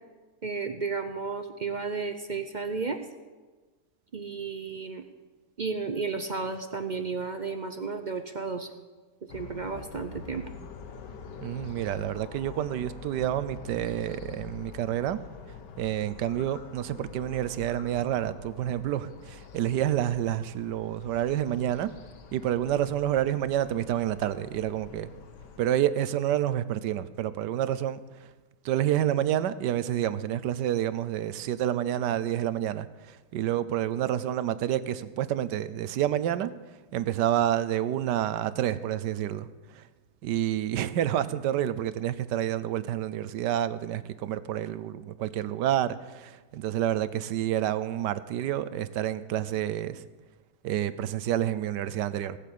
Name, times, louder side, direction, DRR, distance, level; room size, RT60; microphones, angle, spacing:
voice 1, 0.4-3.0 4.1-5.0 5.6-8.7 9.3-10.5, right 4 dB, 50° right, 0.5 m, -33 dB
sound 1, 9.3-25.6, left 6 dB, 90° left, 1.8 m, -46 dB
voice 2, 11.4-15.2 15.8-21.9 22.3-25.1 25.6-28.3 28.6-36.5 36.9-39.5 39.7-39.8 40.2-50.0 50.6-52.4, right 11 dB, 90° right, 1.3 m, -29 dB
18.5 x 7.6 x 8.5 m
omnidirectional pair, 1.8 m